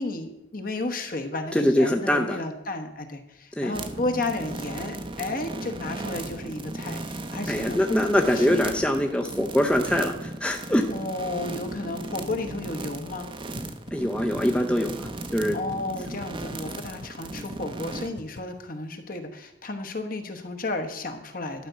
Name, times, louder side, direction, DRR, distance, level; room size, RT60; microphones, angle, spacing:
voice 1, 0.0-8.8 10.9-13.3 15.5-21.7, left 2 dB, 50° left, 5 dB, 1.2 m, -33 dB
voice 2, 1.5-2.4 3.6-3.7 7.5-10.8 13.9-15.6, equal, 5° left, 3 dB, 0.6 m, -23 dB
sound 1, 3.7-18.1, right 2 dB, 25° right, 0.7 m, -36 dB
sound 2, 13.6-13.7 13.9-14.0 14.2-14.4 14.9-15.1 15.5-15.8 16.2-16.3 16.5-16.6 16.8-17.1 17.5-17.8 18.2-18.4, left 3 dB, 70° left, 0.9 m, -42 dB
11.5 x 5.1 x 8.0 m, 0.98 s
head